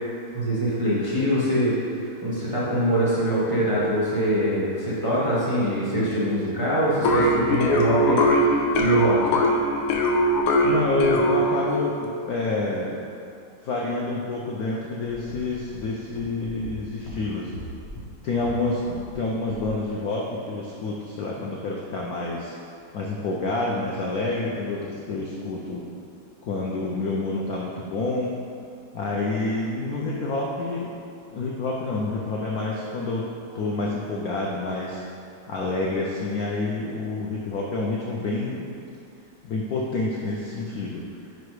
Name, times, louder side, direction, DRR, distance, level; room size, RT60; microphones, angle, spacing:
voice 1, 0.3-9.3, equal, 30° right, -9 dB, 0.5 m, -24 dB
sound 1, 7.0-11.8, equal, 70° left, 1.0 m, -21 dB
voice 2, 10.6-13.0 13.6-17.5 18.2-22.5 22.9-25.8 26.4-28.3 28.9-30.9 31.3-33.3 33.5-35.0 35.5-38.7 39.4-41.0, left 2 dB, 90° left, -3 dB, 0.8 m, -28 dB
sound 2, 15.1-19.2 19.4-19.7, left 1 dB, 45° left, 1.0 m, -40 dB
5.2 x 4.8 x 4.7 m, 2.5 s
omnidirectional pair, 2.3 m